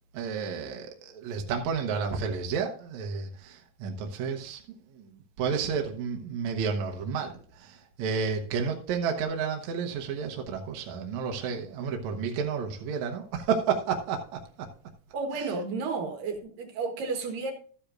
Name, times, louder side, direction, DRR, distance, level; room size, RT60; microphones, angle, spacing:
voice 1, 0.1-4.6 5.0-5.1 5.4-7.3 7.6-14.2, right 6 dB, 65° right, 2.2 m, -31 dB
voice 2, 15.1-17.5, right 4 dB, 80° right, 3.1 m, -32 dB
12.5 x 10.0 x 2.5 m
omnidirectional pair, 3.9 m